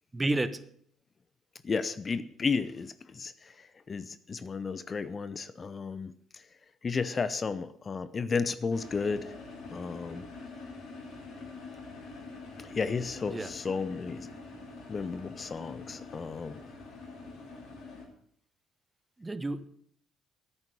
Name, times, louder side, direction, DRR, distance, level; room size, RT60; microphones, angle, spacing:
voice 1, 0.1-0.6 13.3-13.5 19.2-19.7, right 2 dB, 20° right, 1.2 m, -30 dB
voice 2, 1.6-6.4 6.8-9.3 9.7-10.3 12.6-14.3 14.9-16.6, left 5 dB, 35° left, 0.7 m, -33 dB
sound 1, 8.7-18.1, left 3 dB, 60° left, 4.6 m, -45 dB
13.5 x 9.9 x 6.7 m
hypercardioid pair, 50°, 0 cm